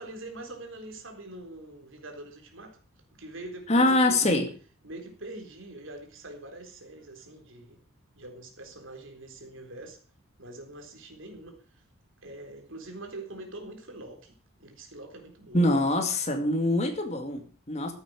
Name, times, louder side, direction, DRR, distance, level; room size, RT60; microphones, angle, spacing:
voice 1, 0.0-2.8 3.1-4.4 4.8-7.8 8.2-10.0 10.4-11.6 12.2-15.7, right 2 dB, 60° right, 3 dB, 4.0 m, -44 dB
voice 2, 3.7-4.5 15.5-17.9, left 1 dB, 30° left, 5 dB, 2.3 m, -24 dB
14.5 x 8.9 x 6.3 m, 0.40 s
head